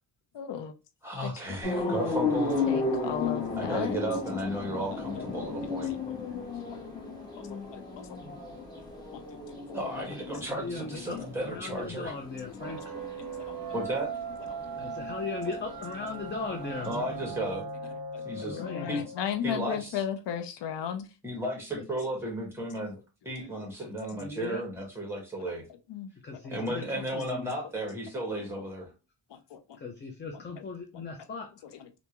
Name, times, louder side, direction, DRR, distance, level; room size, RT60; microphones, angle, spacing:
voice 1, 0.3-0.7 1.2-1.3 1.7-2.4 2.7-4.0 4.7-4.8 5.4-5.5 5.9-6.2 7.4-8.2 9.3-9.8 12.6-13.1 13.4-13.6 18.1-18.2 18.6-21.1 23.6-23.7 25.9-26.1 29.3-29.8 30.3-30.6 30.9-31.0 31.6-31.9, left 9 dB, 75° left, 8 dB, 0.6 m, -36 dB
voice 2, 1.0-2.7 3.6-5.9 8.2-8.4 9.7-12.1 13.7-14.1 16.8-17.6 18.2-18.6 18.9-19.0 19.4-20.0 21.2-23.0 23.2-25.6 26.5-28.9, right 1 dB, 5° right, 0 dB, 1.5 m, -34 dB
sound 1, 1.6-17.5, left 3 dB, 10° left, 1.8 m, -35 dB
voice 3, 10.3-12.8 14.8-17.0 18.4-18.9 24.2-24.6 26.2-27.5 29.8-31.5, left 4 dB, 25° left, 3 dB, 0.5 m, -38 dB
sound 2, 12.6-19.9, right 5 dB, 60° right, 0.8 m, -39 dB
3.4 x 2.6 x 2.9 m, 0.29 s
wide cardioid pair, 145°, 42 cm